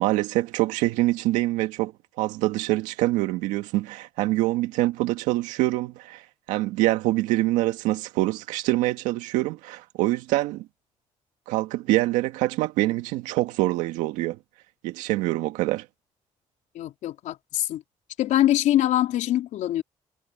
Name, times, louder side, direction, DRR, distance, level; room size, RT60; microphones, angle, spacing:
voice 1, 0.0-6.2 6.5-10.7 11.5-14.4 14.8-15.9, right 17 dB, 85° right, 1.9 m, -25 dB
voice 2, 16.8-17.8 18.2-19.8, left 13 dB, 75° left, 3.6 m, -23 dB
supercardioid pair, 55°, 13 cm